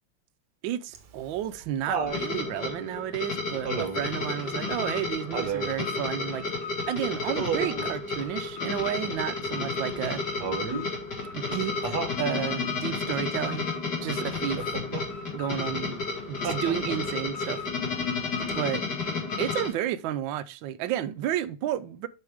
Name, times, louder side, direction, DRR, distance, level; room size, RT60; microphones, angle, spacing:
voice 1, 0.6-6.4 6.9-10.2 11.3-13.7 14.0-14.6 15.3-17.7 18.6-18.8 19.4-22.1, right 11 dB, 80° right, 1.3 m, -32 dB
Laughter, 0.9-2.3 3.7-4.1 5.3-5.8 7.4-7.9 10.4-10.9 11.8-12.2 14.6-15.1 16.4-17.1 18.5-18.6, right 6 dB, 60° right, 1.6 m, -32 dB
sound 1, 2.1-19.7, left 4 dB, 55° left, 2.7 m, -32 dB
Alarm, 4.2-19.7, left 6 dB, 75° left, 2.2 m, -42 dB
8.0 x 5.3 x 3.5 m
omnidirectional pair, 2.1 m